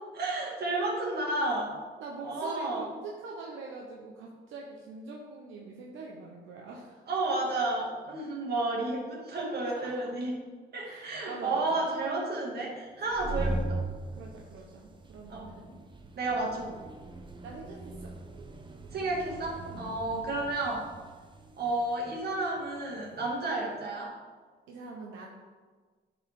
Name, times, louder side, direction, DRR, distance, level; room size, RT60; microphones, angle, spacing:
voice 1, 0.1-1.7 2.2-2.9 7.1-10.4 10.7-13.8 15.3-15.5 16.2-16.8 18.9-20.8 21.6-24.1, right 2 dB, 55° right, -3 dB, 2.4 m, -31 dB
voice 2, 2.0-7.0 9.6-10.1 10.8-11.8 14.1-15.7 16.3-16.6 17.4-18.1 19.7-20.0 24.7-25.3, right 3 dB, 80° right, -1 dB, 1.0 m, -44 dB
sound 1, 13.0-23.4, right 2 dB, 25° right, 0.8 m, -40 dB
10.0 x 4.8 x 3.7 m, 1.4 s
cardioid pair, 90°, 20 cm